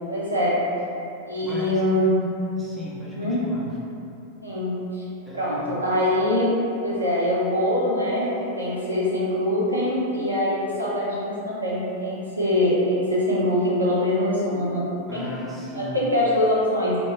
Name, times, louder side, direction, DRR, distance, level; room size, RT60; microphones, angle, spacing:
voice 1, 0.1-0.6 1.3-2.2 3.0-3.4 4.4-5.0 5.3-6.5 6.8-14.8 15.1-15.3 15.7-17.0, left 1 dB, 85° right, -8 dB, 0.6 m, -23 dB
voice 2, 1.4-1.8 2.6-3.7 5.2-5.7 15.1-16.0, equal, 10° left, -8 dB, 0.6 m, -36 dB
2.2 x 2.1 x 3.1 m, 2.7 s
figure-of-eight pair, 90°, 0 cm